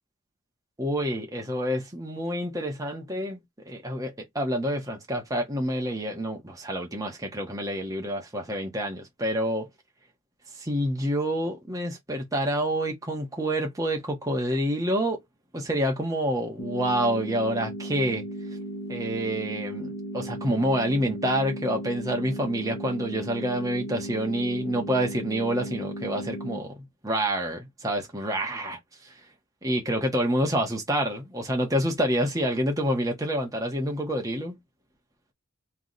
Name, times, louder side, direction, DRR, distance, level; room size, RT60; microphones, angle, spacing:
voice 1, 0.8-9.7 10.6-15.2 15.5-18.2 18.9-29.1 29.6-34.6, equal, 15° right, 1.2 m, -28 dB
sound 1, 16.6-26.6, right 1 dB, 70° left, 1.1 m, -36 dB
3.2 x 3.2 x 4.0 m
head